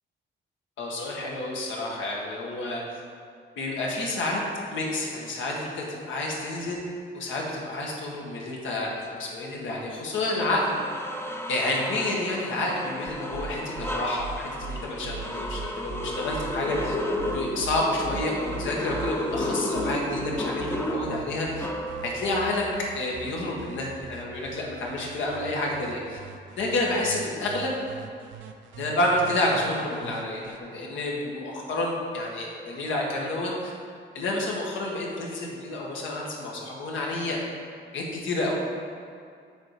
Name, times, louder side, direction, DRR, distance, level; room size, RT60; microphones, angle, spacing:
voice 1, 0.8-3.0 3.6-4.4 4.7-6.8 7.1-10.8 11.5-17.0 17.3-21.7 22.0-22.7 23.0-26.2 26.6-27.8 28.8-33.7 34.1-37.4 37.9-38.5, left 2 dB, 75° left, -2 dB, 1.7 m, -29 dB
sound 1, 9.7-9.9 10.4-22.4, left 1 dB, 10° left, 0.7 m, -33 dB
sound 2, 13.1-30.6, right 6 dB, 75° right, 0.7 m, -41 dB
7.3 x 5.4 x 4.9 m, 2.3 s
cardioid pair, 90°, 20 cm